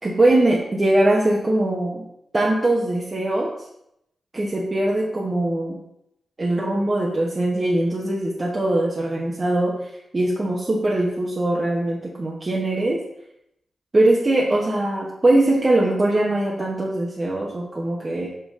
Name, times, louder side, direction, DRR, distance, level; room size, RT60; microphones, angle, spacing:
voice 1, 0.0-2.0 2.3-3.5 4.3-5.8 6.4-13.0 13.9-18.3, right 1 dB, 40° right, -3 dB, 1.1 m, -21 dB
5.8 x 5.5 x 3.8 m, 0.79 s
cardioid pair, 50°, 0 cm